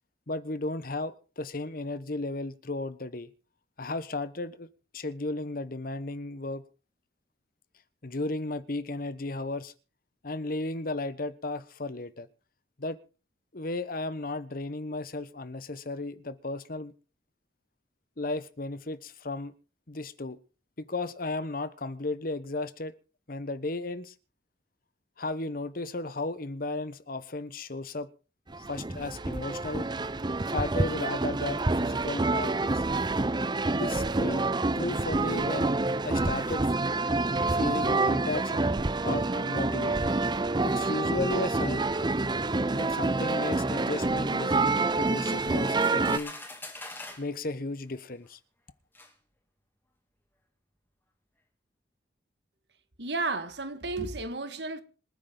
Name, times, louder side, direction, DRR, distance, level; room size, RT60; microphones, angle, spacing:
voice 1, 0.3-3.3 3.8-4.7 4.9-6.6 8.0-9.7 10.2-12.3 12.8-13.0 13.5-16.9 18.2-19.5 19.9-20.4 20.8-22.9 23.3-24.1 25.2-28.1 28.6-29.9 30.5-32.8 33.7-34.5 34.7-35.7 36.0-36.7 37.5-38.6 39.0-40.1 40.6-41.9 42.7-46.3 47.2-48.4, left 2 dB, 55° left, 1.1 m, -34 dB
sound 1, 28.5-46.2, right 3 dB, 25° right, 0.6 m, -27 dB
sound 2, 45.1-47.3 48.2-48.3 49.0-49.1, left 2 dB, 15° left, 2.9 m, -44 dB
voice 2, 53.0-54.8, right 3 dB, 75° right, 1.8 m, -32 dB
27.0 x 9.6 x 3.9 m
head